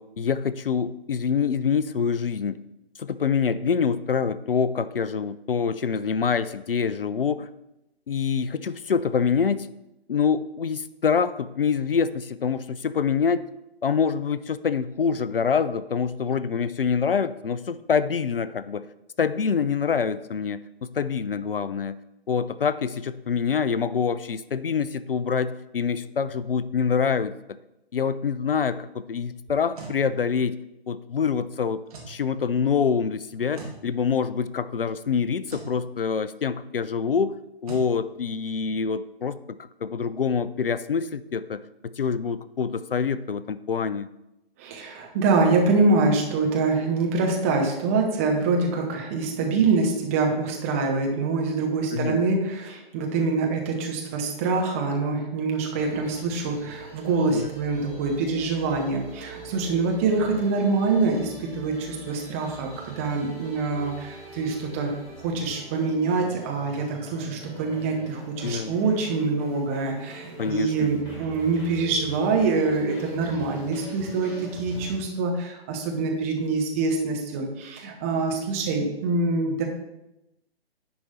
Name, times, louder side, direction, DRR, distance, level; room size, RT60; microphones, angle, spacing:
voice 1, 0.0-2.6 3.0-7.5 8.1-9.7 10.1-13.5 13.8-18.9 19.2-22.0 22.3-27.3 27.9-30.6 30.9-31.8 32.1-44.1 51.9-52.2 57.3-57.5 68.4-68.8 70.4-70.9, left 6 dB, 65° left, 15 dB, 0.4 m, -26 dB
sound 1, 29.5-30.0 31.9-32.2 33.5-33.8 35.5-35.7 37.7-37.9, right 4 dB, 35° right, 1.8 m, -39 dB
voice 2, 44.6-64.9 65.2-79.6, right 3 dB, 15° right, 1 dB, 0.7 m, -25 dB
sound 2, 55.7-75.0, right 1 dB, 25° left, 2.6 m, -44 dB
10.0 x 4.8 x 4.1 m, 0.90 s
figure-of-eight pair, 135°, 31 cm